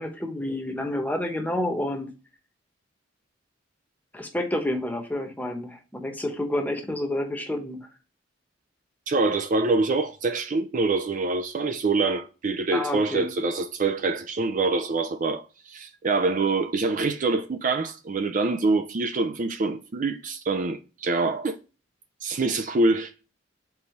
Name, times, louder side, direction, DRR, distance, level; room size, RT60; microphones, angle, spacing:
voice 1, 0.0-2.1 4.1-7.9 12.7-13.3, left 1 dB, 10° left, 1.0 m, -29 dB
voice 2, 9.1-21.6 22.2-23.1, right 3 dB, 45° right, 0.4 m, -25 dB
4.7 x 4.2 x 5.2 m
head